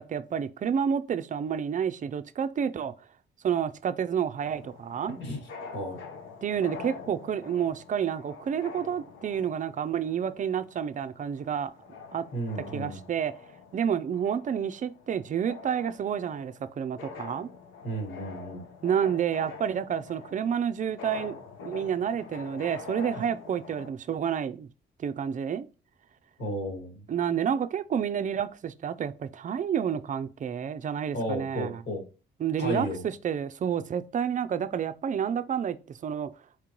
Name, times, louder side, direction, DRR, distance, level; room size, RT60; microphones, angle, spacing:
voice 1, 0.0-2.9 3.4-5.2 6.4-11.7 12.1-12.2 12.7-13.3 13.7-17.5 18.8-21.4 21.6-24.7 25.0-25.7 27.1-31.8 32.4-36.3, right 8 dB, 40° right, 0.4 m, -29 dB
sound 1, 4.4-23.9, left 5 dB, 90° left, 0.9 m, -45 dB
voice 2, 12.3-13.0 17.8-18.6 26.4-27.0 31.1-32.0 32.6-33.0, equal, 60° left, 1.9 m, -33 dB
4.5 x 3.7 x 3.0 m
cardioid pair, 90°, 20 cm